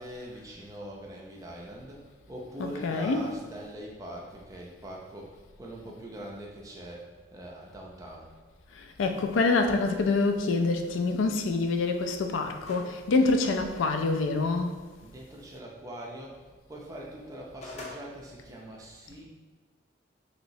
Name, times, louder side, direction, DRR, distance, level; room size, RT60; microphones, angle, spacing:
voice 1, 0.0-8.3 15.0-19.2, right 1 dB, 20° right, 0.4 m, -43 dB
voice 2, 2.6-3.3 8.7-14.8, left 3 dB, 85° left, 0.3 m, -26 dB
sound 1, 12.6-13.0 13.4-13.5 17.2-18.0, left 2 dB, 35° left, 0.6 m, -41 dB
3.1 x 2.9 x 2.6 m
head